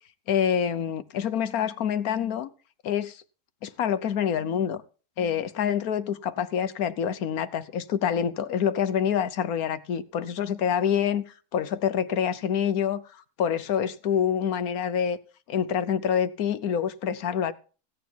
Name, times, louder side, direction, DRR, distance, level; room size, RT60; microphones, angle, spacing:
voice 1, 0.3-2.5 2.8-3.2 3.6-4.8 5.2-15.2 15.5-17.5, left 8 dB, 70° left, 1.3 m, -26 dB
16.0 x 9.3 x 4.5 m
omnidirectional pair, 1.6 m